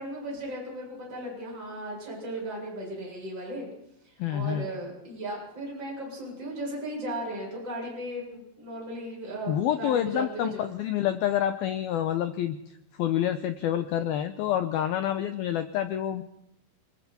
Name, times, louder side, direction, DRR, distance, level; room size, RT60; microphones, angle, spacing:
voice 1, 0.0-3.7 4.0-10.5, right 1 dB, 25° right, -3 dB, 8.3 m, -36 dB
voice 2, 4.2-4.7 9.5-12.6 13.0-16.2, left 11 dB, 85° left, 9 dB, 2.1 m, -27 dB
27.5 x 22.0 x 4.4 m, 0.81 s
omnidirectional pair, 5.5 m